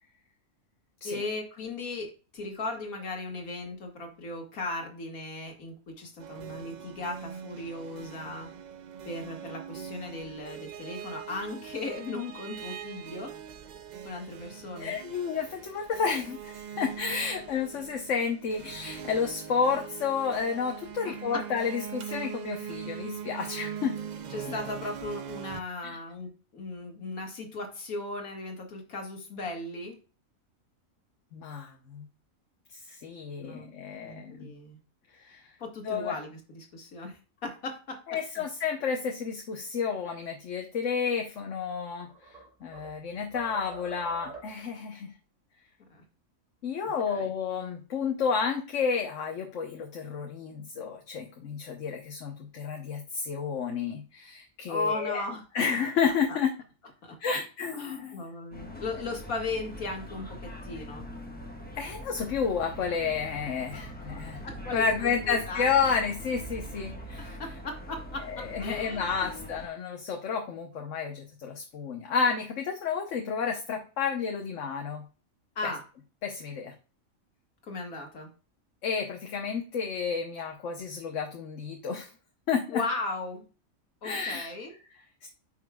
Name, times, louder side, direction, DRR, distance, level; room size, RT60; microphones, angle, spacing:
voice 1, 1.0-8.5 9.0-13.3 14.0-15.0 21.1-21.4 24.3-30.0 33.4-33.7 34.0-34.8 35.6-38.0 38.4-38.5 45.9-46.0 46.8-47.3 54.7-55.4 56.3-56.4 57.0-57.4 57.7-60.3 60.6-61.1 63.7-65.7 67.2-69.5 75.6-75.8 77.6-78.3 82.7-83.4 84.0-84.7, left 2 dB, 85° left, 2 dB, 2.3 m, -37 dB
sound 1, 6.2-25.6, right 8 dB, 80° right, 0.4 m, -42 dB
voice 2, 14.8-23.9 25.8-26.0 31.3-32.1 32.9-34.5 35.2-35.4 35.8-36.2 38.1-42.1 42.6-45.1 46.6-55.2 55.5-56.5 57.2-58.3 61.7-64.4 64.7-67.4 68.2-75.0 76.2-76.7 78.8-82.1 82.5-82.8 84.0-84.5 85.2-85.3, left 6 dB, 65° left, 3 dB, 1.3 m, -31 dB
sound 2, 41.6-43.0 43.3-44.7, right 3 dB, 30° right, 2.1 m, -46 dB
sound 3, 58.5-69.7, equal, 5° left, 1.3 m, -42 dB
9.4 x 5.7 x 2.3 m, 0.35 s
omnidirectional pair, 1.4 m